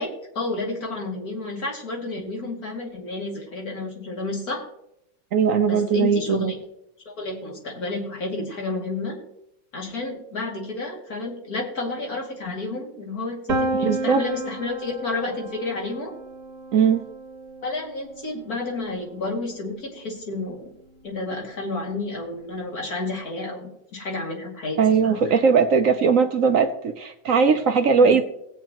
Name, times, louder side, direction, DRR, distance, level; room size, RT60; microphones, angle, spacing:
voice 1, 0.0-4.6 5.6-6.5 7.1-9.2 9.7-16.1 17.6-20.7 21.0-25.2 28.0-28.2, left 2 dB, 50° left, -1 dB, 2.9 m, -31 dB
voice 2, 5.3-6.5 13.8-14.2 16.7-17.1 24.8-28.2, right 5 dB, 65° right, 8 dB, 0.8 m, -19 dB
Piano, 13.5-19.3, right 2 dB, 45° right, 1.4 m, -32 dB
19.5 x 8.4 x 3.0 m, 0.80 s
omnidirectional pair, 2.1 m